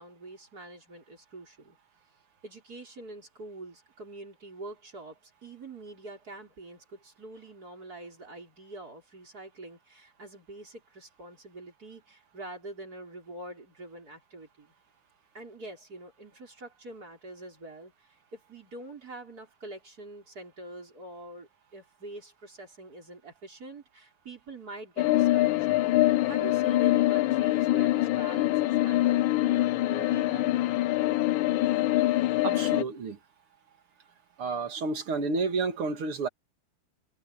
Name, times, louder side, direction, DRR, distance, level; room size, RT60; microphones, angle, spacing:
voice 1, 0.0-1.8 2.4-14.7 15.3-25.7 26.2-30.6, right 2 dB, 45° right, 6.1 m, -45 dB
sound 1, 25.0-32.8, left 16 dB, 75° left, 1.3 m, -24 dB
voice 2, 32.4-33.2 34.4-36.3, right 4 dB, 90° right, 2.9 m, -30 dB
omnidirectional pair, 2.3 m